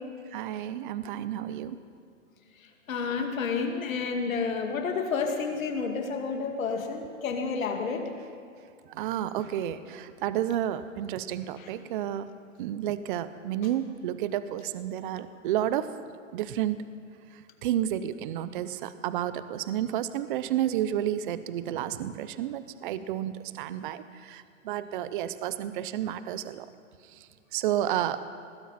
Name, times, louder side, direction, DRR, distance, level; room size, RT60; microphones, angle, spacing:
voice 1, 0.3-1.8 8.9-12.3 12.6-15.9 16.3-16.8 17.6-26.7 27.5-28.2, right 11 dB, 40° right, 13 dB, 0.7 m, -31 dB
voice 2, 2.9-8.1 11.6-11.7, left 5 dB, 85° left, 3 dB, 2.4 m, -30 dB
20.0 x 15.5 x 4.2 m, 2.4 s
hypercardioid pair, 150°, 40 cm